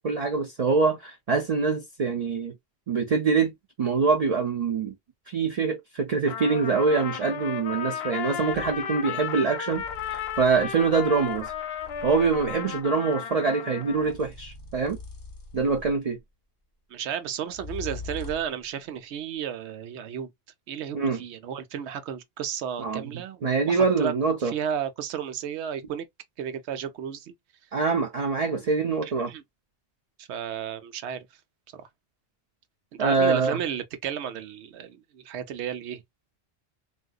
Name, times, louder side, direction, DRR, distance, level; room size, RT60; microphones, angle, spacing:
voice 1, 0.0-2.5 2.9-3.5 3.8-4.9 5.3-11.5 12.0-15.0 15.5-16.2 20.9-21.2 22.8-23.0 23.4-24.5 27.7-29.3 33.0-33.6, right 4 dB, 45° right, 0.5 m, -24 dB
Trumpet, 6.3-14.2, left 8 dB, 70° left, 0.8 m, -34 dB
sound 1, 8.5-8.8 9.7-12.7 13.9-16.2 17.5-18.6, left 3 dB, 20° left, 0.7 m, -43 dB
voice 2, 16.9-20.3 20.7-24.1 24.4-26.1 26.4-27.3 29.0-29.4 30.2-31.3 31.7-31.9 32.9-36.0, right 8 dB, 85° right, 0.9 m, -33 dB
3.6 x 2.5 x 2.3 m
omnidirectional pair, 1.1 m